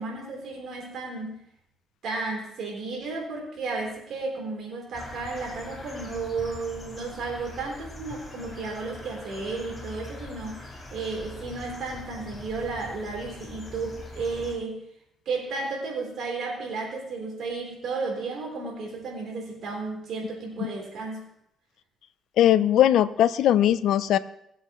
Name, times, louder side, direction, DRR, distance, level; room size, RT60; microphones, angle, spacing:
voice 1, 0.0-1.4 2.0-14.8 15.3-21.3, right 3 dB, 70° right, -1 dB, 3.8 m, -33 dB
sound 1, 4.9-14.6, left 2 dB, 35° left, 5.3 m, -42 dB
voice 2, 22.4-24.2, left 11 dB, 80° left, 14 dB, 0.5 m, -20 dB
20.0 x 7.8 x 3.1 m, 0.78 s
cardioid pair, 90°, 0 cm